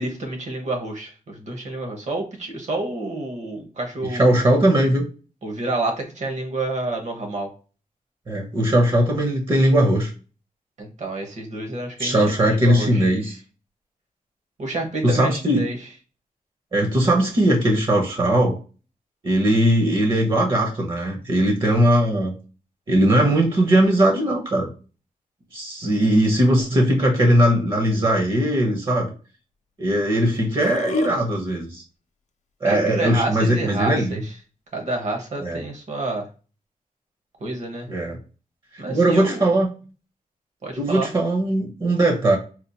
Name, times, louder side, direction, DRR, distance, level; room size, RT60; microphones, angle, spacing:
voice 1, 0.0-4.2 5.4-7.5 10.8-13.1 14.6-15.8 32.6-34.2 34.7-36.3 37.4-37.9 38.8-39.4 40.6-41.1, right 2 dB, 55° right, 2 dB, 1.2 m, -28 dB
voice 2, 4.1-5.0 8.3-10.1 12.0-13.3 15.0-15.6 16.7-18.6 19.2-22.3 22.9-24.7 25.5-29.1 29.8-31.8 32.6-34.2 35.4-35.6 37.9-38.2 38.7-39.7 40.8-42.4, right 1 dB, 35° right, 0 dB, 0.8 m, -19 dB
Burping eructation, 30.0-30.1 30.3-31.1, left 4 dB, 55° left, 0.5 m, -32 dB
4.3 x 2.4 x 2.7 m, 0.35 s
wide cardioid pair, 165°, 14 cm